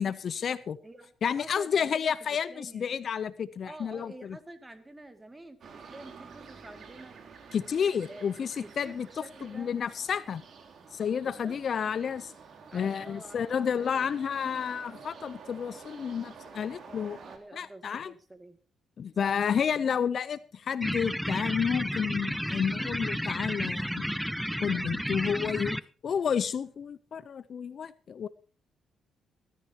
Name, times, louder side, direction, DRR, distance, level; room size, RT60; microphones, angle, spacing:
voice 1, 0.0-0.8 1.2-4.4 7.5-9.1 9.4-10.4 10.9-12.3 12.7-17.2 17.5-18.1 19.0-24.0 24.6-25.8 26.0-28.3, left 7 dB, 50° left, 17 dB, 0.7 m, -30 dB
voice 2, 1.4-3.0 3.6-7.2 8.1-8.3 8.6-9.7 11.2-11.9 12.7-14.1 16.9-18.6 19.2-19.4, right 2 dB, 15° right, 9 dB, 2.3 m, -49 dB
sound 1, 5.6-17.4, right 5 dB, 55° right, 3.1 m, -50 dB
sound 2, 20.8-25.8, equal, ahead, 0.5 m, -32 dB
20.5 x 13.5 x 2.9 m, 0.37 s
cardioid pair, 110°, 0 cm